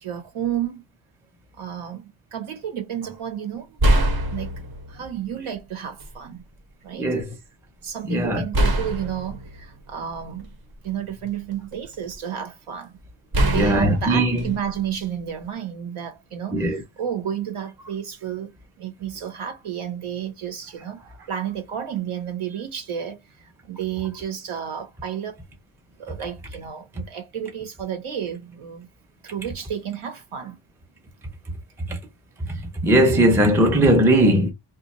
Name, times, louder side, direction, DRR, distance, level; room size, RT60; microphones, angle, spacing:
voice 1, 0.0-0.8 1.6-3.8 4.3-4.6 4.9-6.4 6.8-7.1 7.8-10.5 10.8-13.0 13.4-18.5 18.8-21.0 21.3-25.4 26.0-28.9 29.2-30.6, right 9 dB, 90° right, 1.2 m, -31 dB
sound 1, 3.0-3.2 3.8-5.1 6.0-6.1 8.5-10.7 11.3-12.1 13.3-15.4, right 1 dB, 50° right, 0.8 m, -24 dB
voice 2, 6.9-7.3 8.1-8.4 13.6-14.4 16.5-16.8 32.8-34.5, right 1 dB, 5° right, 0.5 m, -18 dB
2.6 x 2.2 x 4.0 m
wide cardioid pair, 165°, 48 cm